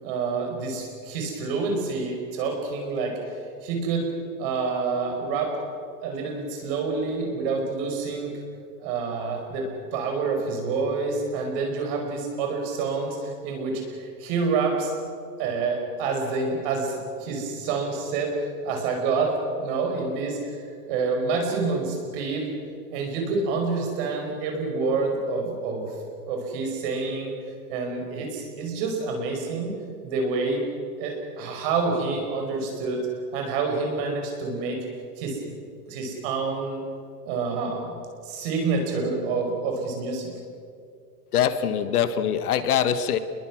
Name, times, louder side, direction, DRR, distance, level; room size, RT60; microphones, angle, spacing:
voice 1, 0.0-3.1 3.6-4.1 4.4-5.6 6.0-8.3 8.8-14.9 15.4-20.4 20.8-22.5 22.9-25.9 26.3-27.3 27.7-29.7 30.0-30.6 31.0-33.0 33.3-34.8 35.2-35.4 35.9-36.8 37.2-37.9 38.2-40.3, right 4 dB, 35° right, 2 dB, 5.1 m, -27 dB
voice 2, 41.3-43.2, left 9 dB, 65° left, 11 dB, 1.5 m, -23 dB
28.0 x 22.0 x 6.2 m, 2.3 s
supercardioid pair, 175°, 48 cm